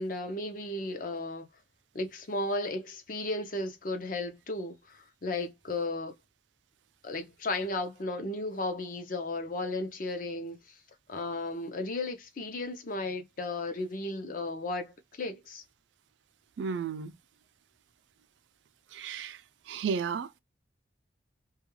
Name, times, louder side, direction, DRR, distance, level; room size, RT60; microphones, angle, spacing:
voice 1, 0.0-1.5 1.9-6.1 7.0-10.8 11.1-15.6, left 2 dB, 50° left, 0.5 m, -34 dB
voice 2, 16.6-17.1 18.9-19.4 19.7-20.3, right 6 dB, 80° right, 0.4 m, -33 dB
2.3 x 2.2 x 3.0 m
head